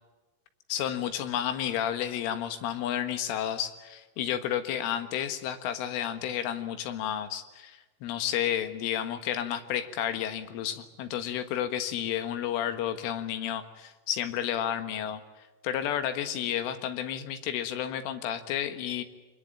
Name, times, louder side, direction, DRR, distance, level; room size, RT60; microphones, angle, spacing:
voice 1, 0.7-15.2 15.6-19.0, left 10 dB, 90° left, 9 dB, 4.1 m, -31 dB
24.5 x 21.5 x 9.0 m, 1.2 s
omnidirectional pair, 5.5 m